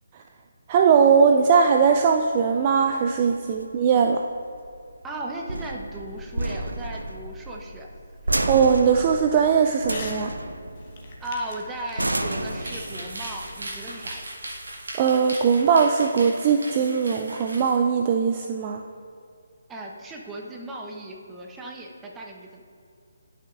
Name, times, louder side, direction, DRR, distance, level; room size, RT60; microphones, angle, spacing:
voice 1, 0.7-4.2 8.5-10.3 15.0-18.8, right 6 dB, 30° right, 3 dB, 0.3 m, -20 dB
sound 1, 1.9-14.9, right 1 dB, 80° right, 0.5 m, -32 dB
voice 2, 5.0-7.9 11.2-14.3 19.7-22.6, right 1 dB, 10° right, -1 dB, 0.8 m, -36 dB
Crumpling crinkling / Tearing, 9.9-10.2 10.5-13.9, left 3 dB, 35° left, 1.1 m, -43 dB
sound 2, 12.3-17.8, right 1 dB, 65° right, 1.8 m, -38 dB
11.5 x 6.0 x 2.5 m, 2.4 s
figure-of-eight pair, 145°, 0 cm